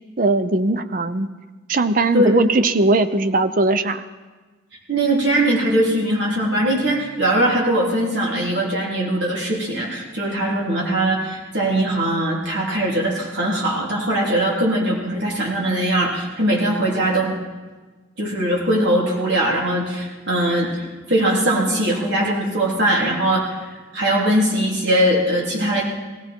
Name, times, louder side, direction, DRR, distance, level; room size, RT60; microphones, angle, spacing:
voice 1, 0.2-1.3 1.7-4.0, right 2 dB, 45° right, 11 dB, 0.6 m, -19 dB
voice 2, 4.9-17.3 18.2-20.7 21.1-23.6 23.9-25.8, right 1 dB, 60° right, -4 dB, 3.4 m, -20 dB
18.5 x 15.5 x 4.4 m, 1.3 s
head